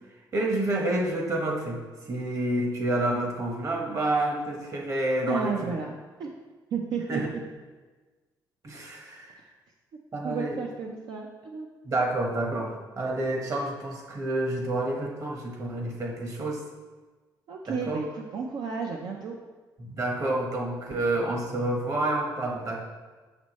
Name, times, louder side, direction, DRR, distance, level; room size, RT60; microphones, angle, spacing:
voice 1, 0.3-5.7 7.1-7.3 8.6-9.4 10.1-10.5 11.8-16.6 17.7-18.0 19.8-22.8, right 1 dB, 40° right, 0 dB, 1.3 m, -29 dB
voice 2, 5.3-5.9 6.2-6.3 6.7-7.2 10.2-11.7 17.5-19.4, right 5 dB, 65° right, 0 dB, 0.6 m, -32 dB
6.2 x 5.9 x 3.1 m, 1.3 s
cardioid pair, 100°, 8 cm